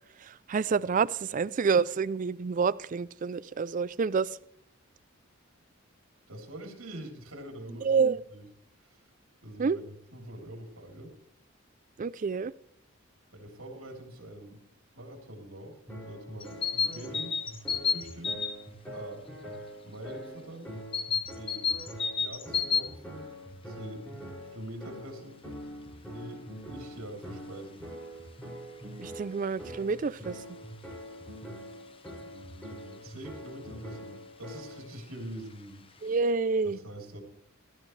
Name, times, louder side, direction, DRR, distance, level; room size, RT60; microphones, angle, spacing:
voice 1, 0.2-4.4 7.8-8.2 9.6-9.8 12.0-12.5 29.0-30.4 36.0-36.8, right 5 dB, 40° right, 19 dB, 0.4 m, -28 dB
voice 2, 6.3-7.9 8.3-8.4 8.9-9.0 9.4-9.8 10.1-11.1 13.3-14.6 14.9-15.8 16.1-17.3 17.9-18.3 18.9-19.2 19.8-20.7 21.3-21.7 22.2-23.3 23.6-24.0 24.5-25.4 26.1-27.8 32.2-35.8 36.6-37.2, right 1 dB, 85° right, 3 dB, 3.2 m, -44 dB
sound 1, 15.9-34.9, equal, 10° left, 5.9 m, -44 dB
sound 2, 16.4-18.6 20.9-22.9, left 6 dB, 25° left, 0.8 m, -30 dB
17.0 x 12.5 x 3.2 m, 0.70 s
head